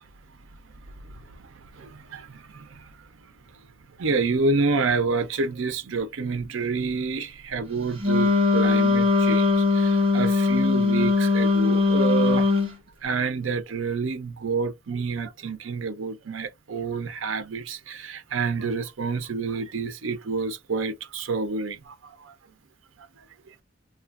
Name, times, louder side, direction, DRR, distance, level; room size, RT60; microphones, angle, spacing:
voice 1, 1.8-2.3 2.7-2.8 4.0-12.5 13.0-21.9 22.2-22.3, right 4 dB, 80° right, 0.6 m, -28 dB
Wind instrument woodwind instrument, 8.0-12.7, left 3 dB, 30° right, 1.1 m, -20 dB
2.9 x 2.3 x 2.4 m
head